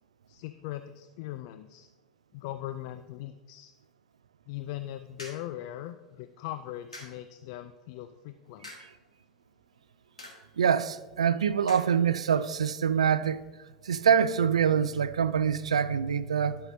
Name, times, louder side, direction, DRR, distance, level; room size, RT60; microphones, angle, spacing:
voice 1, 0.3-1.9 2.3-3.7 4.5-8.7, left 13 dB, 55° left, 0.3 m, -40 dB
sound 1, 4.6-14.1, left 2 dB, 90° left, 1.4 m, -53 dB
voice 2, 10.6-13.4 13.8-16.6, right 7 dB, 80° right, 0.3 m, -25 dB
12.0 x 5.8 x 2.7 m
figure-of-eight pair, 80°, 3 cm